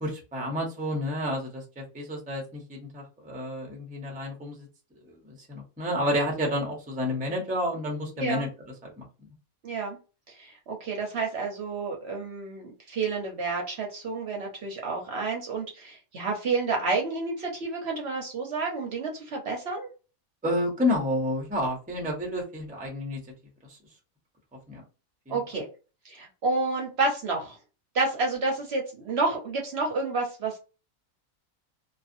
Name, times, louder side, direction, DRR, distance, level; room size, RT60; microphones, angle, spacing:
voice 1, 0.0-4.7 5.0-8.5 8.8-9.0 20.4-23.2 23.7-23.8 24.7-24.8 25.3-25.4, left 1 dB, 10° right, 0 dB, 0.5 m, -30 dB
voice 2, 8.2-8.5 9.6-10.0 10.3-19.9 25.3-25.7 26.0-27.6 27.9-30.6, right 3 dB, 55° right, 1 dB, 0.8 m, -30 dB
2.5 x 2.4 x 2.5 m, 0.32 s
omnidirectional pair, 1.5 m